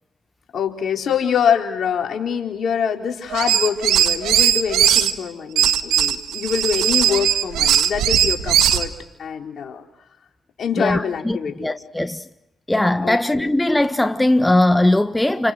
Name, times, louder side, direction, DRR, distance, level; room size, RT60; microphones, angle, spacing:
voice 1, 0.5-8.9 9.2-9.9 10.6-11.7 13.0-13.5, left 7 dB, 70° left, 4.2 m, -24 dB
sound 1, 3.3-5.1 5.6-8.9, right 10 dB, 85° right, 1.5 m, -18 dB
voice 2, 10.8-12.2 12.7-15.5, left 1 dB, 15° left, 1.4 m, -19 dB
30.0 x 27.5 x 6.5 m
supercardioid pair, 45°, 0 cm